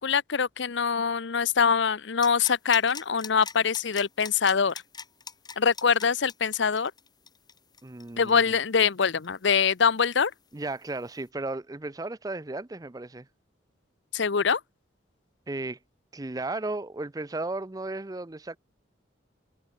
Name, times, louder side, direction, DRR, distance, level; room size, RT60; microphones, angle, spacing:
voice 1, 0.0-4.7 5.6-6.9 8.2-10.3 14.1-14.6, left 6 dB, 70° left, 0.7 m, -24 dB
sound 1, 2.2-9.7 10.0-10.1, left 6 dB, 20° left, 4.5 m, -42 dB
voice 2, 7.8-8.4 10.5-13.3 15.5-15.8 16.1-18.6, right 2 dB, 20° right, 0.5 m, -34 dB
head